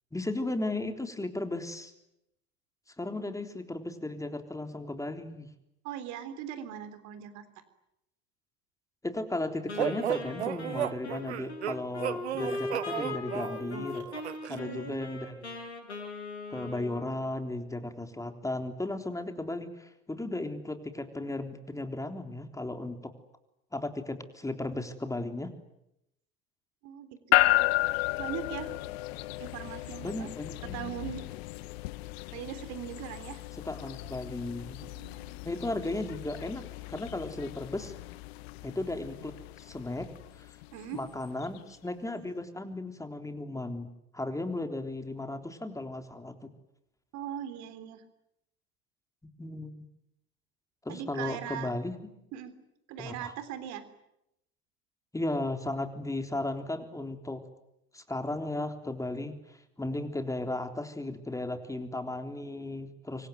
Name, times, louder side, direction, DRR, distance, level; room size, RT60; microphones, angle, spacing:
voice 1, 0.1-1.9 3.0-5.5 9.0-14.0 14.5-15.6 16.5-23.1 23.7-25.5 30.0-31.0 33.6-34.8 35.4-37.9 38.6-40.1 40.4-40.6 40.9-43.9 44.1-46.5 49.4-49.9 50.8-52.1 53.0-53.3 55.1-57.4 57.9-63.3, left 2 dB, 10° left, 6 dB, 3.6 m, -35 dB
voice 2, 5.8-7.4 14.5-15.1 26.8-27.7 28.2-28.7 29.4-30.3 30.6-31.2 32.3-33.4 34.9-35.4 40.7-41.0 47.1-48.0 50.9-51.7 52.3-52.5 52.9-53.9, right 10 dB, 60° right, 11 dB, 3.6 m, -40 dB
Wind instrument woodwind instrument, 9.7-17.6, left 2 dB, 90° left, 6.2 m, -39 dB
sound 1, 9.8-14.6, right 11 dB, 85° right, 1.1 m, -34 dB
sound 2, 27.3-41.6, left 21 dB, 70° left, 1.0 m, -33 dB
26.0 x 24.0 x 9.3 m, 0.84 s
hypercardioid pair, 75°, 33 cm